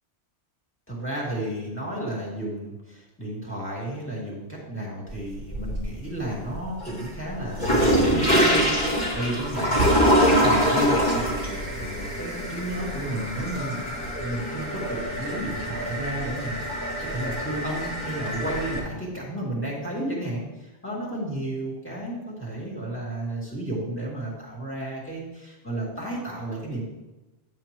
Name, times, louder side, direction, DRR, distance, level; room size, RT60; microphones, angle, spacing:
voice 1, 0.9-8.8 9.1-26.9, right 1 dB, 10° left, -5 dB, 2.4 m, -32 dB
sound 1, 5.1-6.0 6.5-18.8, equal, 40° left, 2.6 m, -25 dB
9.9 x 7.9 x 3.0 m, 1.1 s
omnidirectional pair, 1.2 m